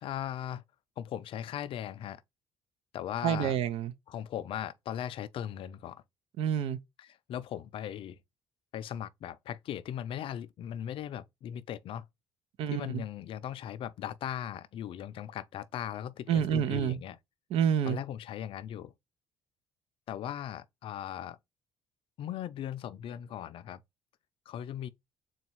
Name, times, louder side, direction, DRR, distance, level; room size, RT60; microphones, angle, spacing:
voice 1, 0.0-0.6 1.0-2.2 2.9-3.6 4.1-6.0 7.0-8.2 8.7-12.1 12.7-17.2 17.8-18.9 20.1-21.4 22.2-23.8 24.5-24.9, left 10 dB, 60° left, 0.4 m, -38 dB
voice 2, 3.2-3.9 6.4-6.8 12.6-12.8 16.3-17.0 17.5-18.0, right 9 dB, 70° right, 0.5 m, -28 dB
3.9 x 2.3 x 4.5 m
supercardioid pair, 80°, 10 cm